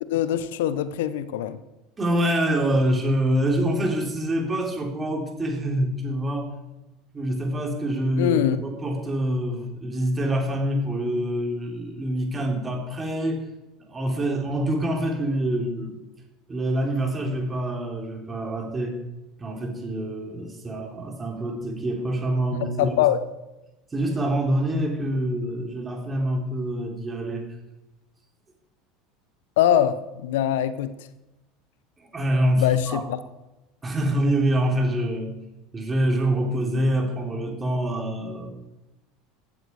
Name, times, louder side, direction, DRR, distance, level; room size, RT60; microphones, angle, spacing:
voice 1, 0.0-1.6 8.2-8.6 22.8-23.2 29.6-31.1 32.6-33.2, left 10 dB, 70° left, 15 dB, 0.8 m, -23 dB
voice 2, 2.0-6.5 7.1-13.4 13.8-16.0 16.5-19.0 19.4-23.0 23.9-27.5 32.0-33.0 33.8-35.3 35.7-38.5, right 1 dB, 20° right, 1 dB, 4.0 m, -25 dB
15.5 x 13.5 x 4.8 m, 1.0 s
hypercardioid pair, 75°, 0 cm